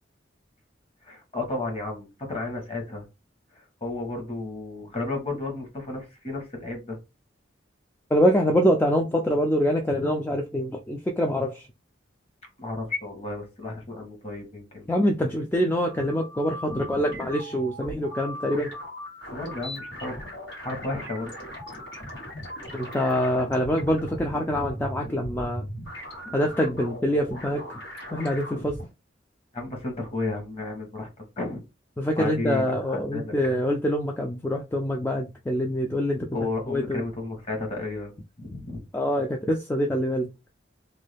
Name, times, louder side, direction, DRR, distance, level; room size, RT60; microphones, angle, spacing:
voice 1, 1.0-3.0 3.6-7.0 12.6-14.9 16.7-17.3 19.3-20.3 20.6-21.3 26.2-26.3 29.5-31.6 32.2-33.3 36.3-38.1 38.4-38.8, left 2 dB, 35° left, 1.1 m, -33 dB
voice 2, 8.1-11.7 14.9-18.7 22.7-25.7 26.3-27.7 28.1-28.8 32.0-36.3 36.7-37.0 38.9-40.3, equal, 10° left, 0.3 m, -25 dB
sound 1, 15.6-28.9, equal, 80° left, 1.5 m, -39 dB
2.6 x 2.3 x 3.3 m
head